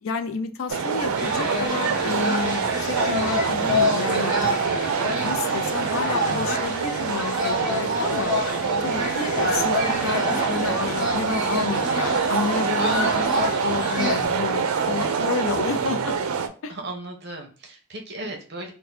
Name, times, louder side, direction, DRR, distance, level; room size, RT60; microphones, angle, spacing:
voice 1, 0.0-4.3 5.2-8.3 8.8-16.1 16.6-16.7, left 5 dB, 75° left, 8 dB, 0.4 m, -30 dB
sound 1, 0.7-16.5, right 5 dB, 90° right, 0.4 m, -25 dB
sound 2, 1.2-14.2, left 1 dB, 5° right, 1.3 m, -28 dB
voice 2, 16.7-18.7, right 1 dB, 55° right, 3 dB, 0.8 m, -36 dB
2.6 x 2.1 x 4.0 m, 0.40 s
head